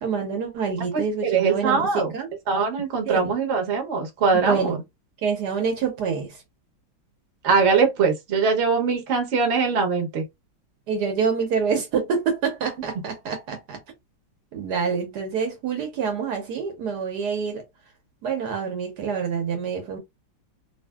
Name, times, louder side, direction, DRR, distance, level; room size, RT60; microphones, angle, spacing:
voice 1, 0.0-2.3 3.0-3.3 4.3-4.8 5.2-6.4 10.9-13.8 14.5-17.6 18.2-20.0, right 6 dB, 70° right, 1.2 m, -26 dB
voice 2, 1.2-2.1 2.5-4.7 7.4-10.2, right 5 dB, 50° right, 1.0 m, -22 dB
2.7 x 2.6 x 2.2 m
omnidirectional pair, 2.0 m